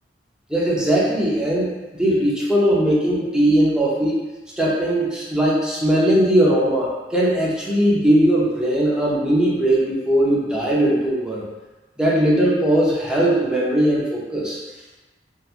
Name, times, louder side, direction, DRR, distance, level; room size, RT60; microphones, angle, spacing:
voice 1, 0.5-4.2 4.6-11.4 12.0-14.6, right 1 dB, 5° right, -6 dB, 0.5 m, -19 dB
2.9 x 2.2 x 2.4 m, 1.1 s
head